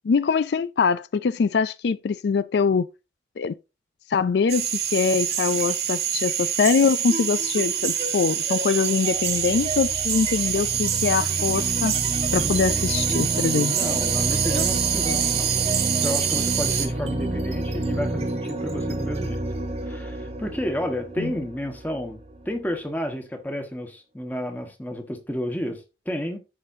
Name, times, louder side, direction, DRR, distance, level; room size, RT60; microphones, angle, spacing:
voice 1, 0.0-2.9 3.4-3.5 4.1-11.9 12.3-13.9 21.2-21.3, left 5 dB, 70° left, 0.4 m, -23 dB
sound 1, 4.5-16.9, right 9 dB, 65° right, 1.8 m, -26 dB
sound 2, 5.3-5.8 6.2-22.8, right 1 dB, 35° right, 1.0 m, -30 dB
voice 2, 13.6-15.5 16.0-19.4 19.8-22.2 22.4-26.4, equal, 10° left, 1.3 m, -31 dB
14.0 x 5.0 x 2.7 m
head